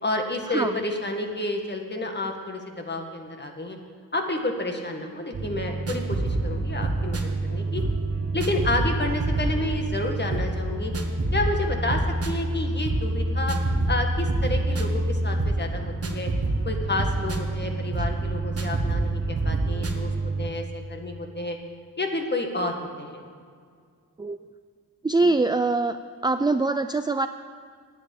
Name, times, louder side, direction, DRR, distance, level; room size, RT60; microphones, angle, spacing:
voice 1, 0.0-3.8 4.1-7.2 7.5-7.8 8.3-10.9 11.3-13.6 13.9-16.3 16.7-20.1 20.4-21.6 22.0-23.2, left 2 dB, 30° left, 3 dB, 1.9 m, -30 dB
sound 1, 5.3-20.5, right 2 dB, 45° right, 1.5 m, -27 dB
voice 2, 25.0-26.0 26.2-27.3, right 3 dB, 15° right, 9 dB, 0.4 m, -23 dB
10.0 x 9.3 x 8.7 m, 2.1 s
cardioid pair, 70°, 35 cm